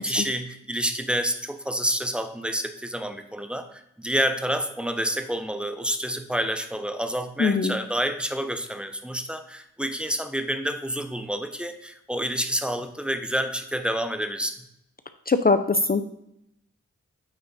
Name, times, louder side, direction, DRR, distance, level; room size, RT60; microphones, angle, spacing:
voice 1, 0.0-14.5, equal, 5° right, 7 dB, 1.0 m, -28 dB
voice 2, 7.4-7.7 15.3-16.0, left 4 dB, 30° left, 10 dB, 0.6 m, -21 dB
9.2 x 3.8 x 4.1 m, 0.79 s
cardioid pair, 40°, 30 cm